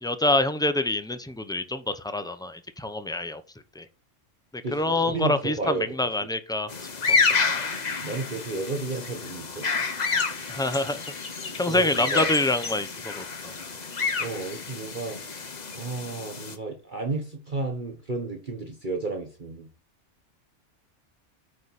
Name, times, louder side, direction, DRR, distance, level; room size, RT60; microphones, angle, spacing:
voice 1, 0.0-3.4 3.7-3.8 4.7-6.7 7.1-7.2 10.5-11.1 11.5-13.5, left 2 dB, 5° left, 0.5 m, -26 dB
voice 2, 4.6-5.9 6.2-6.3 8.0-9.7 11.5-12.3 14.2-19.7, right 3 dB, 40° right, 1.4 m, -32 dB
sound 1, 6.7-16.6, left 4 dB, 35° left, 1.0 m, -29 dB
9.0 x 5.0 x 4.2 m
omnidirectional pair, 1.3 m